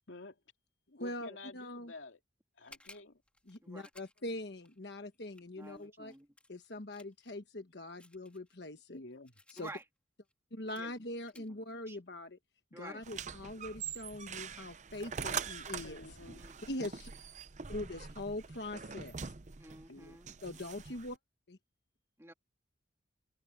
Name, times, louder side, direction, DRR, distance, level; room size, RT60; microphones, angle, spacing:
voice 1, 0.1-0.4 0.9-2.2 2.6-3.2 8.9-9.3 15.8-16.5 19.9-20.2, left 2 dB, 80° left, 2.6 m, -50 dB
voice 2, 1.0-1.9 3.5-6.1 6.5-9.0 9.5-9.7 10.5-12.4 12.7-16.2 16.6-17.1 17.7-19.3 20.4-21.2 21.5-21.6, left 1 dB, 60° left, 1.3 m, -42 dB
sound 1, 2.6-7.4 8.0-9.8 10.3-10.4 10.7-10.9 11.3-11.5, left 2 dB, 5° left, 3.1 m, -60 dB
voice 3, 5.6-6.3 9.6-9.8 10.8-10.9 11.4-11.5 11.9-12.0 12.7-13.0 16.4-16.5 19.6-20.3 22.2-22.3, right 2 dB, 15° right, 2.1 m, -50 dB
sound 2, 13.0-21.2, right 6 dB, 40° right, 0.6 m, -43 dB
head